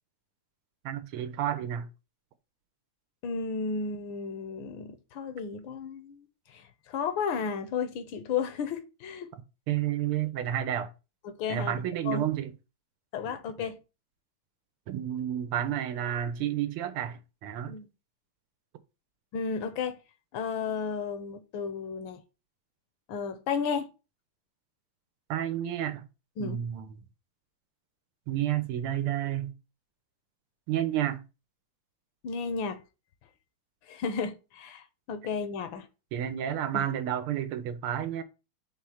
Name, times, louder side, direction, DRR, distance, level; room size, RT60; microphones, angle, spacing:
voice 1, 0.8-1.9 9.7-10.9 11.5-12.5 13.3-13.4 14.9-17.7 25.3-26.0 26.4-26.9 28.3-29.5 30.7-31.2 36.1-38.2, right 11 dB, 90° right, 1.7 m, -30 dB
voice 2, 3.2-6.2 6.5-9.3 11.2-12.2 13.1-13.8 17.7-17.9 19.3-20.0 20.3-22.2 23.1-23.9 26.4-26.6 32.2-32.8 33.9-35.9 36.7-36.8, left 5 dB, 70° left, 1.5 m, -33 dB
4.9 x 3.7 x 5.7 m
omnidirectional pair, 2.3 m